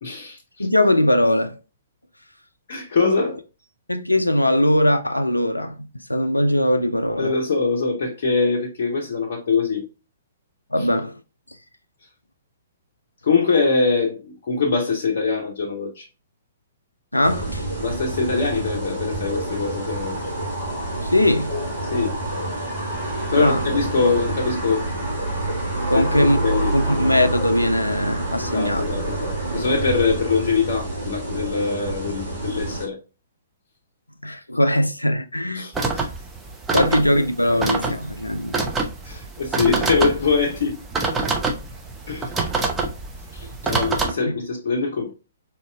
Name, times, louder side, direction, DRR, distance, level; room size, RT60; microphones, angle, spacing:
voice 1, 0.0-0.7 2.7-3.4 7.2-9.9 10.8-10.9 13.2-16.1 17.8-20.2 21.9-22.2 23.3-24.9 25.9-26.8 28.4-33.0 35.5-36.1 36.7-36.9 39.0-40.8 42.1-42.3 43.3-45.1, left 4 dB, 50° left, 0.7 m, -23 dB
voice 2, 0.6-1.6 3.9-7.3 10.7-11.2 17.1-17.6 21.0-21.6 23.4-23.6 25.9-26.4 26.7-28.9 34.2-35.6 36.7-38.6 43.6-43.7 44.3-44.4, left 1 dB, 85° left, 0.4 m, -20 dB
sound 1, 17.2-32.9, right 2 dB, 40° right, 1.6 m, -27 dB
sound 2, 35.7-44.1, right 3 dB, 10° right, 0.6 m, -26 dB
4.1 x 2.9 x 2.3 m
figure-of-eight pair, 120°, 0 cm